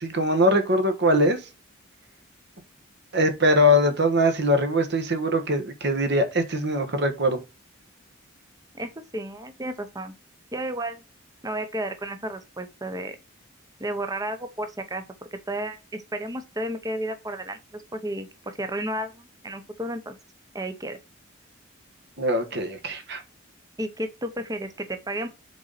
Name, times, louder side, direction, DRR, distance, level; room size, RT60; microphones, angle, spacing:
voice 1, 0.0-1.4 3.1-7.4 22.2-23.2, equal, 55° right, 1.4 m, -22 dB
voice 2, 8.7-10.1 10.5-11.0 11.4-13.2 13.8-15.0 15.3-20.2 20.5-21.0 23.8-25.3, right 1 dB, 20° right, 0.8 m, -32 dB
6.9 x 4.1 x 4.0 m
head